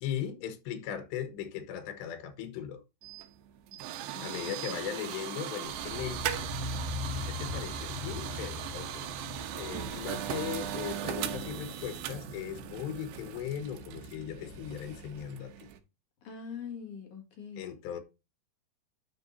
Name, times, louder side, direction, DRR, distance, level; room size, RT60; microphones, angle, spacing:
voice 1, 0.0-2.8 4.2-6.3 7.2-9.1 9.5-15.5 17.6-18.0, left 9 dB, 85° left, 3.3 m, -38 dB
sound 1, 3.0-15.8, right 11 dB, 75° right, 2.9 m, -39 dB
voice 2, 4.1-4.8 16.2-17.7, left 6 dB, 50° left, 3.1 m, -44 dB
sound 2, 5.7-15.2, left 3 dB, 35° left, 6.6 m, -42 dB
9.9 x 5.9 x 2.7 m
omnidirectional pair, 4.9 m